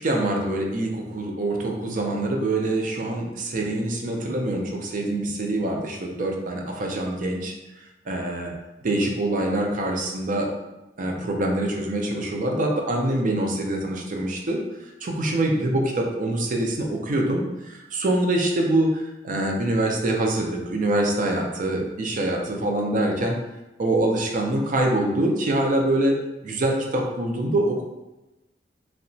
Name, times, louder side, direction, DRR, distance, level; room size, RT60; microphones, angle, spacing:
voice 1, 0.0-7.5 8.1-8.5 8.8-10.5 11.0-14.6 15.0-23.4 23.8-26.2 26.4-27.8, right 1 dB, 50° right, 1 dB, 0.4 m, -24 dB
2.8 x 2.1 x 2.6 m, 1.0 s
head